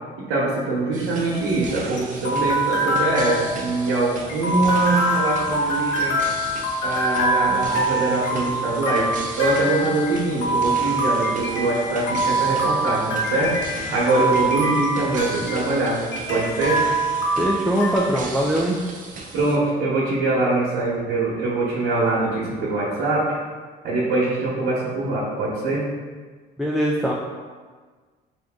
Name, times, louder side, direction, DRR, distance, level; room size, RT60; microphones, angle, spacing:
voice 1, 0.2-6.2 6.8-16.0 16.3-16.8 19.3-23.3 23.8-25.8, right 2 dB, 90° right, -7 dB, 1.0 m, -23 dB
sound 1, 0.9-19.6, right 3 dB, 50° right, 0.7 m, -37 dB
sound 2, 1.3-18.0, right 1 dB, 80° left, 0.9 m, -24 dB
voice 2, 17.4-18.8 26.6-27.1, right 1 dB, ahead, -3 dB, 0.4 m, -21 dB
4.5 x 2.6 x 3.6 m, 1.5 s
cardioid pair, 110°, 17 cm